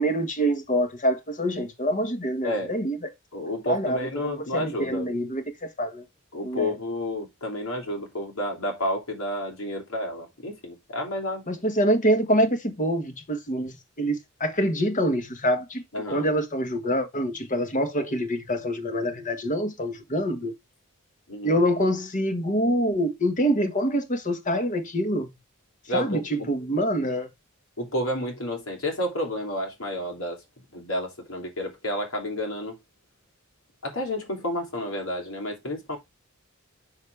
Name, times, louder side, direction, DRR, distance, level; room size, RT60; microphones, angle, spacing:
voice 1, 0.0-3.0 3.6-6.0 6.4-6.8 11.5-20.5 21.4-25.3 25.9-27.3, equal, 40° left, 1.5 m, -26 dB
voice 2, 2.4-2.7 3.3-5.1 6.3-11.4 15.9-16.3 21.3-21.6 25.9-26.5 27.8-30.4 30.7-32.8 33.8-36.0, left 1 dB, 85° left, 3.3 m, -30 dB
6.9 x 6.4 x 3.5 m
head